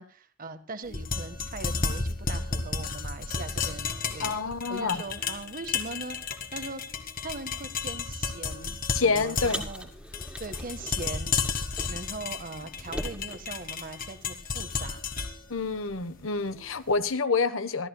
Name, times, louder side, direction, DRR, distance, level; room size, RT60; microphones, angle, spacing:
voice 1, 0.0-4.4 4.7-6.8 7.2-9.9 10.4-11.6 11.9-15.0, right 3 dB, 45° right, 1.5 m, -40 dB
sound 1, 0.9-16.9, left 4 dB, 45° left, 1.9 m, -33 dB
voice 2, 4.2-5.0 8.9-9.6 15.5-17.9, left 4 dB, 85° left, 1.3 m, -27 dB
Car, 9.4-12.3 12.5-14.3, right 1 dB, 5° right, 2.3 m, -40 dB
25.5 x 14.0 x 2.3 m
head